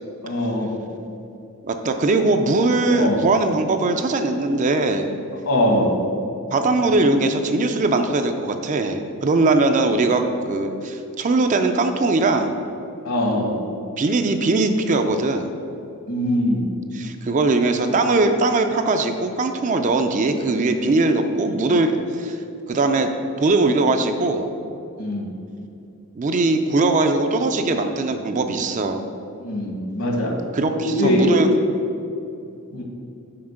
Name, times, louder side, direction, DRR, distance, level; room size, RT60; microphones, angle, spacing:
voice 1, 0.2-0.9 2.9-3.2 5.4-5.9 13.0-13.6 16.1-16.7 25.0-25.3 29.4-30.3 30.7-31.3 32.7-32.8, left 1 dB, 65° left, 0 dB, 1.3 m, -22 dB
voice 2, 1.7-5.1 6.5-12.6 14.0-15.5 16.9-22.4 22.7-23.1 23.4-24.5 26.2-29.0 30.5-31.5, right 2 dB, 35° right, 6 dB, 0.4 m, -20 dB
5.9 x 4.3 x 6.3 m, 2.6 s
head